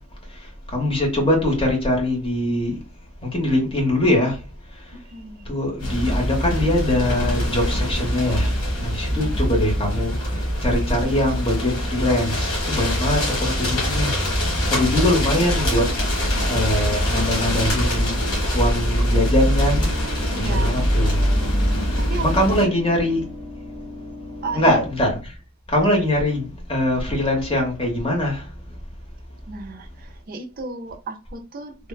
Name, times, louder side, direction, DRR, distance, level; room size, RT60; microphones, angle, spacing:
voice 1, 0.7-2.8 3.2-4.4 5.5-8.5 8.8-14.2 14.6-15.8 16.4-18.2 18.5-19.9 20.4-21.2 22.2-23.3 24.5-25.2 25.7-28.4, left 1 dB, 25° left, 0.8 m, -22 dB
voice 2, 4.9-5.5 9.1-9.5 20.3-22.6 24.4-24.8 29.5-31.9, right 3 dB, 40° right, 0.4 m, -35 dB
sound 1, 5.8-22.7, equal, 85° left, 1.4 m, -23 dB
sound 2, 19.5-24.9, left 2 dB, 20° right, 0.9 m, -39 dB
3.2 x 2.1 x 2.2 m
head